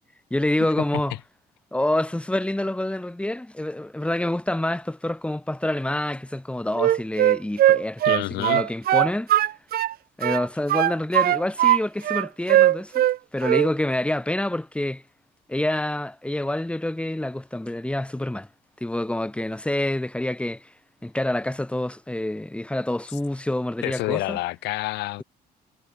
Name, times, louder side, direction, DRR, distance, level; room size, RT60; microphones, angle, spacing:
voice 1, 0.3-1.1 1.7-9.3 10.2-13.1 13.3-15.0 15.5-18.5 18.8-20.7 21.0-24.4, left 1 dB, 5° left, 6.6 m, -27 dB
Wind instrument woodwind instrument, 6.8-9.9 10.2-11.8 12.0-13.2 13.4-13.7, right 13 dB, 65° right, 1.5 m, -19 dB
voice 2, 8.0-8.6 23.8-25.2, left 19 dB, 85° left, 3.1 m, -28 dB
cardioid pair, 110°, 17 cm